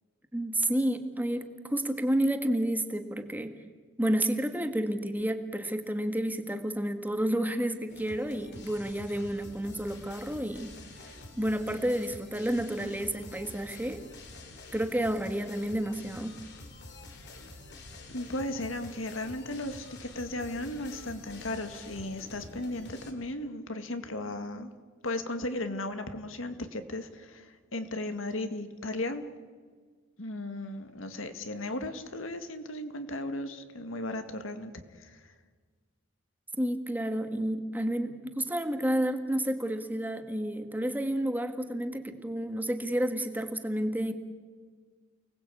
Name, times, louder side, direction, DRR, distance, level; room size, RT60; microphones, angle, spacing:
voice 1, 0.3-3.5 4.0-10.7 11.4-14.0 14.7-16.4 36.6-44.1, right 1 dB, 10° right, 7 dB, 1.8 m, -30 dB
sound 1, 7.9-23.1, left 2 dB, 60° left, 3.4 m, -48 dB
voice 2, 18.1-24.7 25.0-29.3 30.2-35.3, left 1 dB, 80° left, 8 dB, 2.2 m, -36 dB
29.5 x 19.5 x 8.6 m, 1.5 s
head